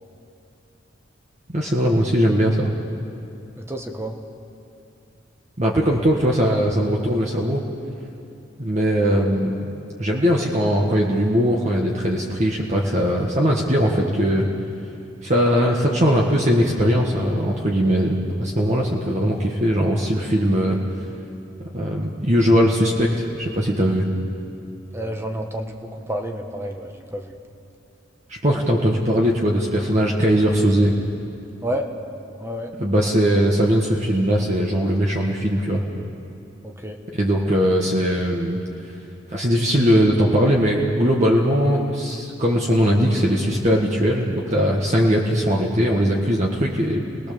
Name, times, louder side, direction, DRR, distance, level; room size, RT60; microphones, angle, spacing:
voice 1, 1.5-2.7 5.6-7.6 8.6-9.7 10.0-14.5 15.2-20.8 21.7-24.1 28.3-30.9 32.8-35.8 37.1-38.6 39.3-47.1, equal, 35° right, -2 dB, 1.7 m, -20 dB
voice 2, 3.5-4.2 24.9-27.4 31.6-31.9 32.4-32.7 36.6-37.0, equal, 15° right, 3 dB, 1.5 m, -30 dB
29.5 x 20.0 x 7.0 m, 2.7 s
head